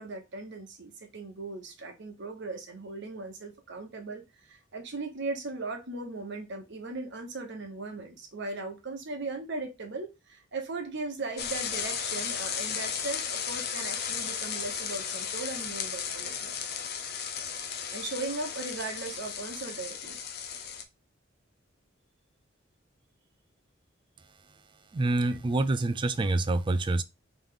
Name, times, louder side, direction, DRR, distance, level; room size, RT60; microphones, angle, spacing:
voice 1, 0.0-16.6 17.9-20.2, right 3 dB, 65° right, 1.1 m, -38 dB
sound 1, 11.4-20.8, left 7 dB, 55° left, 0.6 m, -35 dB
voice 2, 24.9-27.0, right 2 dB, 25° right, 0.3 m, -26 dB
3.4 x 3.2 x 3.7 m
head